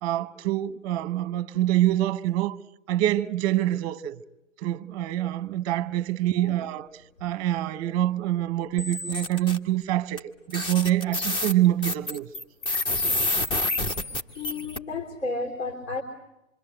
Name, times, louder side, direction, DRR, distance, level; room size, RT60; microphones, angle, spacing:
voice 1, 0.0-2.6 2.9-4.2 4.6-6.9 7.2-12.3, right 13 dB, 30° right, 0.9 m, -25 dB
sound 1, 8.8-9.6 10.2-10.3 10.5-14.8, left 2 dB, 10° left, 0.9 m, -28 dB
voice 2, 14.4-16.0, left 3 dB, 65° left, 3.9 m, -32 dB
27.0 x 24.0 x 7.7 m
figure-of-eight pair, 120°, 39 cm